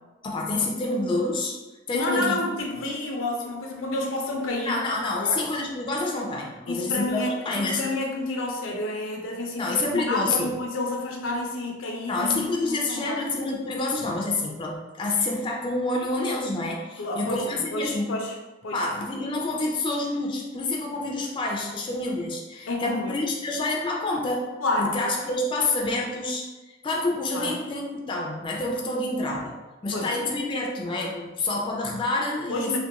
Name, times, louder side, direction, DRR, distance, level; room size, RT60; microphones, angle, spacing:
voice 1, 0.2-1.6 1.9-2.4 4.6-7.8 9.6-10.5 12.1-18.2 18.7-24.5 24.8-26.5 26.8-29.6 29.8-32.8, left 2 dB, 25° left, -1 dB, 0.3 m, -28 dB
voice 2, 1.9-4.8 5.2-5.4 6.7-13.3 17.0-18.3 18.6-18.9 22.7-23.2 24.6-25.0 27.3-27.6 29.9-30.1 32.5-32.8, left 2 dB, 90° left, 1 dB, 0.4 m, -30 dB
2.4 x 2.2 x 2.8 m, 1.1 s
head